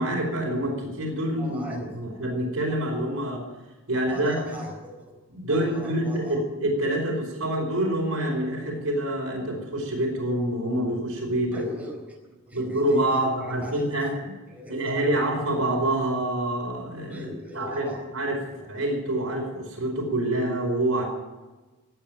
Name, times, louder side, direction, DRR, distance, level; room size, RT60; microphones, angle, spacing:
voice 1, 0.0-3.4 3.9-4.4 5.3-11.6 12.5-14.3 14.7-17.3 17.5-17.9 18.1-18.4 18.7-21.0, right 1 dB, 70° right, 1 dB, 4.8 m, -26 dB
voice 2, 1.4-1.9 4.1-5.2 5.5-6.4 11.5-14.1 14.5-15.2 17.1-18.1 18.5-18.7, left 1 dB, 5° right, -1 dB, 4.3 m, -40 dB
18.0 x 8.9 x 9.1 m, 1.2 s
head